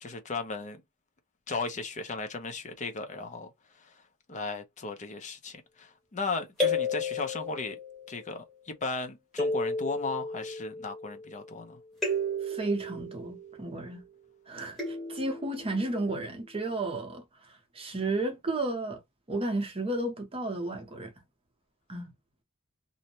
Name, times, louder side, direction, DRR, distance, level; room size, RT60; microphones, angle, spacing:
voice 1, 0.0-0.8 1.5-3.5 4.3-7.8 8.1-11.8, left 3 dB, 35° left, 0.5 m, -36 dB
sound 1, 6.6-8.1 9.4-11.4 12.0-14.2 14.8-16.1, left 2 dB, ahead, 1.0 m, -33 dB
voice 2, 12.5-14.0 14.5-17.2 17.7-19.0 19.3-21.1 21.9-22.1, right 2 dB, 25° right, 0.7 m, -32 dB
2.6 x 2.1 x 2.8 m
head